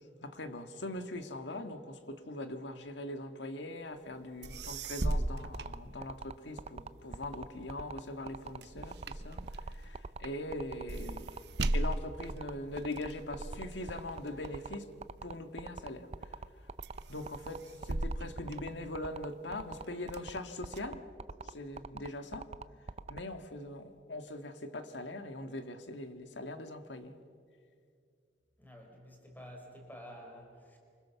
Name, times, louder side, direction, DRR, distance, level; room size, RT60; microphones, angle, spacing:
voice 1, 0.0-11.4 11.7-14.9 15.2-16.1 17.1-21.1 21.4-22.5 23.1-27.1, left 1 dB, 80° left, 8 dB, 1.8 m, -41 dB
sound 1, 4.2-4.3 4.4-6.5 7.0-15.6 16.2-16.5 16.8-19.3 19.8-20.8, right 1 dB, 65° right, 1.0 m, -38 dB
sound 2, 5.4-23.2, right 4 dB, 35° right, 0.6 m, -43 dB
voice 2, 28.6-30.8, equal, 10° left, 2 dB, 4.6 m, -50 dB
28.5 x 26.0 x 7.1 m, 2.3 s
head